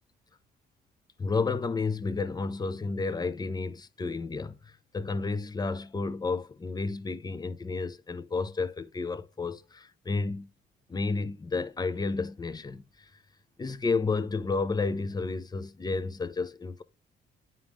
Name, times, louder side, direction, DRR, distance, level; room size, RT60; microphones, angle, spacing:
voice 1, 1.2-10.5 10.9-13.1 13.6-16.8, left 4 dB, 20° left, 0.6 m, -31 dB
9.1 x 3.7 x 3.6 m
cardioid pair, 90°, 20 cm